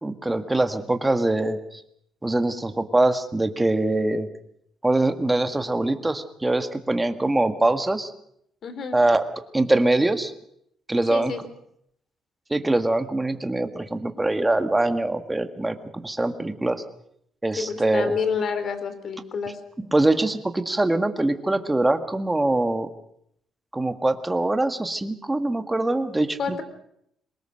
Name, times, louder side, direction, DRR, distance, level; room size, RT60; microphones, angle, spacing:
voice 1, 0.0-1.8 2.2-4.3 4.8-8.1 8.9-9.2 9.5-10.3 10.9-11.3 12.5-16.8 17.4-18.2 19.8-22.9 23.7-26.6, right 2 dB, 10° right, 8 dB, 1.7 m, -23 dB
voice 2, 8.6-9.0 11.1-11.4 17.6-19.6 26.4-26.6, left 5 dB, 55° left, 11 dB, 3.2 m, -28 dB
23.0 x 20.0 x 6.5 m, 0.72 s
cardioid pair, 105°, 0 cm